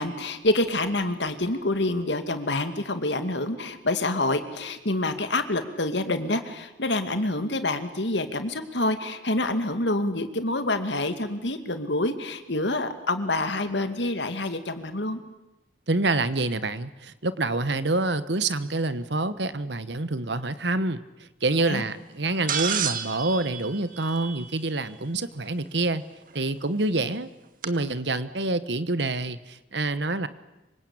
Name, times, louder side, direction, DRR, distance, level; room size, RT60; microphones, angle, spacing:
voice 1, 0.0-15.2 21.6-21.8, left 2 dB, 70° left, 9 dB, 2.4 m, -27 dB
voice 2, 15.9-21.0 21.4-26.0 26.3-27.3 27.6-30.3, right 2 dB, 65° right, 14 dB, 1.4 m, -27 dB
sound 1, 22.5-24.8 26.4-26.5 27.6-27.7, right 8 dB, 50° right, 2.0 m, -30 dB
26.0 x 25.0 x 8.8 m, 0.98 s
head